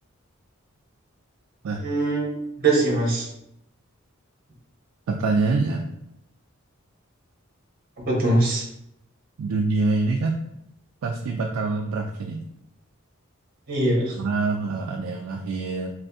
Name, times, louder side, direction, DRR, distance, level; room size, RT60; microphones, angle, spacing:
voice 1, 1.8-2.3 2.6-3.3 8.0-8.6 13.7-14.1, right 2 dB, 45° right, -2 dB, 0.7 m, -22 dB
voice 2, 5.1-5.9 9.4-10.4 11.0-12.4 14.2-15.9, right 3 dB, 80° right, 1 dB, 0.3 m, -25 dB
2.6 x 2.4 x 3.4 m, 0.79 s
head